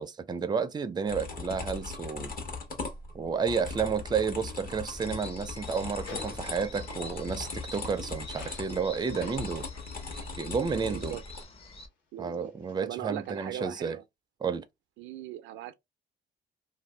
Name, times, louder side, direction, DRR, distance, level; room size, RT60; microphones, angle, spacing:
voice 1, 0.0-2.3 3.1-9.7 10.4-11.2 12.2-14.0 14.4-14.6, right 5 dB, 20° right, 0.4 m, -31 dB
sound 1, 1.1-11.4, left 4 dB, 45° left, 1.2 m, -39 dB
sound 2, 4.5-11.9 12.2-13.6, left 4 dB, 70° left, 1.2 m, -52 dB
sound 3, 4.9-11.9, left 2 dB, 30° left, 0.8 m, -47 dB
voice 2, 10.7-11.2 12.1-12.5 12.8-14.0 15.0-15.7, right 12 dB, 90° right, 0.4 m, -39 dB
2.5 x 2.2 x 3.2 m
cardioid pair, 90°, 20 cm